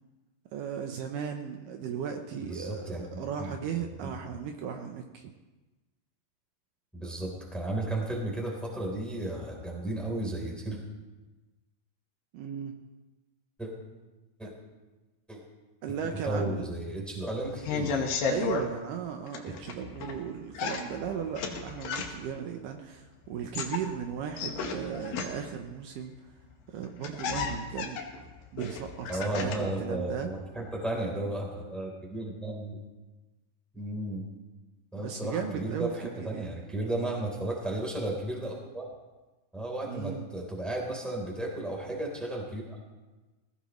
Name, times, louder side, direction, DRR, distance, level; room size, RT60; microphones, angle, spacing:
voice 1, 0.5-5.3 12.3-12.7 14.4-14.5 15.8-16.7 18.3-26.3 26.7-28.0 28.5-30.3 35.0-36.5 39.9-40.2, right 8 dB, 75° right, 4 dB, 2.3 m, -36 dB
voice 2, 2.4-3.0 3.4-3.5 6.9-10.8 13.6-13.7 14.4-14.5 15.3-15.4 16.2-18.1 29.1-32.8 33.7-34.3 34.9-38.8 39.5-42.8, right 1 dB, ahead, -2 dB, 3.2 m, -34 dB
sound 1, 17.4-18.7 19.3-20.2 20.6-22.4 23.3-25.6 26.5-26.6 26.8-29.8 30.1-30.8, left 5 dB, 80° left, 3.2 m, -33 dB
20.5 x 17.5 x 3.1 m, 1.2 s
omnidirectional pair, 4.1 m